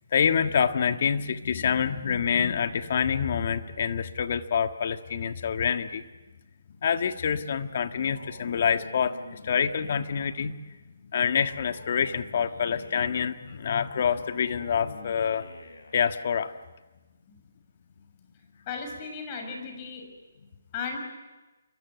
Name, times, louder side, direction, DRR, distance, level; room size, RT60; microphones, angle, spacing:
voice 1, 0.1-6.0 6.8-10.6 11.1-15.5 15.9-16.5, left 7 dB, 50° left, 8 dB, 1.6 m, -26 dB
Male speech man speaking, 8.1-10.4 11.4-13.2 14.1-16.1, left 2 dB, 75° left, 7.8 m, -47 dB
voice 2, 18.7-20.0 20.7-21.0, left 5 dB, 30° left, 4 dB, 6.9 m, -35 dB
28.5 x 23.5 x 8.2 m, 1.1 s
hypercardioid pair, 150°, 0 cm